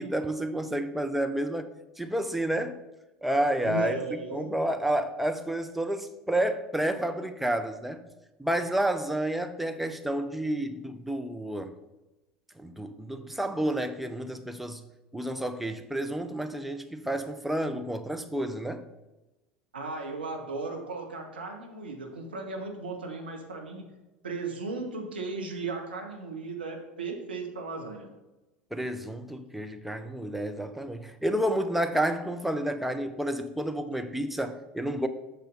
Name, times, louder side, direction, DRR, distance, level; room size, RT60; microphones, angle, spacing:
voice 1, 0.0-1.7 2.0-2.8 3.2-8.0 8.4-11.7 12.6-14.8 15.1-18.8 28.7-35.1, right 1 dB, 5° right, 7 dB, 0.7 m, -30 dB
voice 2, 3.6-4.5 19.7-23.9 24.2-28.1, right 3 dB, 80° right, 2 dB, 1.4 m, -36 dB
8.2 x 6.6 x 4.0 m, 1.0 s
figure-of-eight pair, 75°, 5 cm